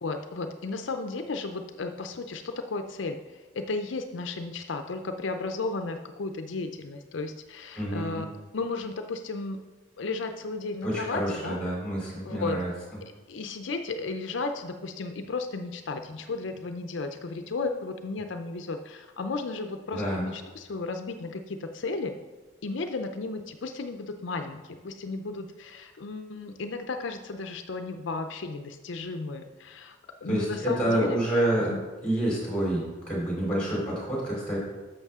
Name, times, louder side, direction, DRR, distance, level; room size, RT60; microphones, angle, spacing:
voice 1, 0.0-3.2 3.5-8.3 8.5-9.6 10.0-11.6 12.2-12.6 13.0-22.2 22.6-30.0 30.2-31.2 31.7-31.8, left 3 dB, 75° left, 7 dB, 0.5 m, -34 dB
voice 2, 7.7-8.2 10.8-12.7 19.9-20.3 30.3-31.8 32.0-34.6, right 1 dB, 5° left, -4 dB, 3.3 m, -28 dB
11.0 x 7.0 x 3.6 m, 1.2 s
head